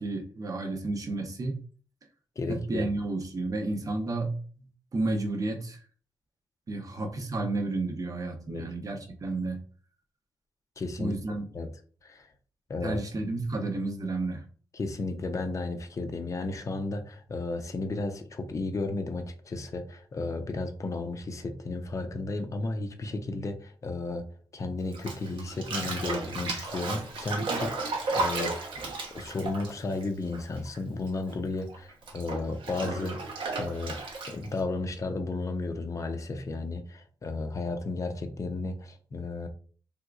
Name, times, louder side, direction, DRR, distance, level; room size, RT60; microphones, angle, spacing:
voice 1, 0.0-1.6 2.5-5.8 6.7-9.6 11.0-11.5 12.8-14.4, right 2 dB, 45° right, 4 dB, 0.8 m, -31 dB
voice 2, 2.4-2.9 8.5-8.6 10.8-11.2 11.5-11.7 12.0-12.3 12.7-13.0 14.7-24.3 24.5-28.5 29.1-33.2 33.6-34.0 34.3-39.5, left 3 dB, 40° left, 6 dB, 0.5 m, -33 dB
Bathtub (filling or washing), 24.9-30.8 31.0-34.6, right 3 dB, 75° right, 0.9 m, -34 dB
3.5 x 2.9 x 2.4 m, 0.43 s
cardioid pair, 65°, 8 cm